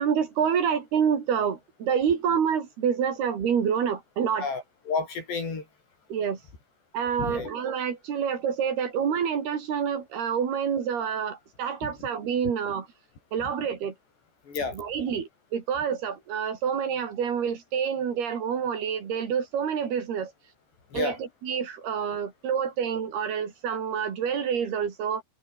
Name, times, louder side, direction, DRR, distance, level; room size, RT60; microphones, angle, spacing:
voice 1, 0.0-4.5 6.1-6.4 6.9-12.9 13.3-14.0 14.7-20.3 20.9-25.2, right 7 dB, 70° right, 5.3 m, -27 dB
voice 2, 4.4-5.6 7.2-7.5 14.5-14.8 20.9-21.2, left 4 dB, 85° left, 9.7 m, -30 dB
omnidirectional pair, 4.8 m